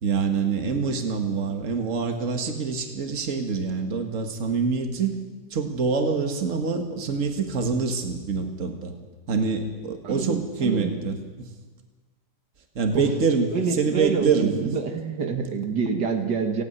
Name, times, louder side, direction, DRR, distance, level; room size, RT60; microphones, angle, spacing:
voice 1, 0.0-5.2 5.5-8.9 9.3-11.5 12.8-14.8, right 5 dB, 50° right, 5 dB, 2.0 m, -25 dB
voice 2, 10.0-10.9 12.9-13.1 13.5-16.6, right 5 dB, 80° right, 5 dB, 2.2 m, -27 dB
28.0 x 9.9 x 9.5 m, 1.3 s
omnidirectional pair, 1.8 m